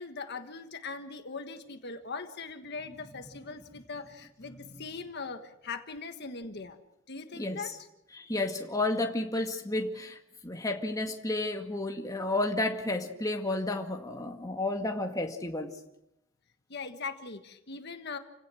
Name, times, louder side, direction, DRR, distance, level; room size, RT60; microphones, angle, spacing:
voice 1, 0.0-6.8 7.1-7.9 16.7-18.2, left 4 dB, 55° left, 7 dB, 1.5 m, -40 dB
voice 2, 8.1-10.2 10.4-15.7, left 2 dB, 20° left, 3 dB, 2.0 m, -31 dB
29.5 x 17.0 x 6.4 m, 0.83 s
head